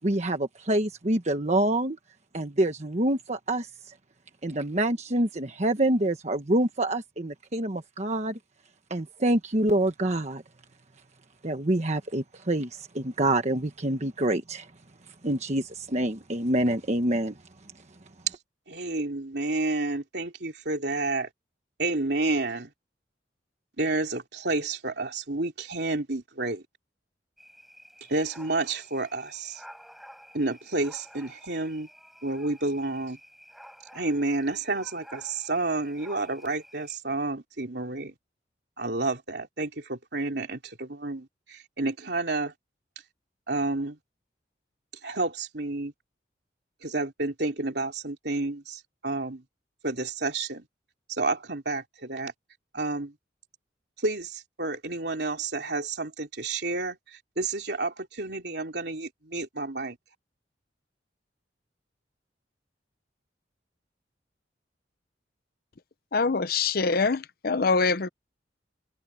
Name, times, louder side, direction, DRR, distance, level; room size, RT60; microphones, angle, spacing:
voice 1, 0.0-2.0 2.3-3.7 4.4-8.4 8.9-10.4 11.4-14.7 15.2-17.4, right 1 dB, 40° right, 1.3 m, -26 dB
voice 2, 18.7-21.3 21.8-22.7 23.8-26.6 28.1-29.6 30.3-31.9 32.2-33.2 33.9-38.1 38.8-42.5 43.5-44.0 45.0-45.9 46.8-49.4 49.8-50.7 51.1-52.3 52.7-53.1 54.0-60.0, right 2 dB, 65° right, 3.4 m, -30 dB
sound 1, 27.4-37.0, equal, ahead, 5.9 m, -51 dB
voice 3, 66.1-68.1, left 4 dB, 55° left, 0.7 m, -24 dB
head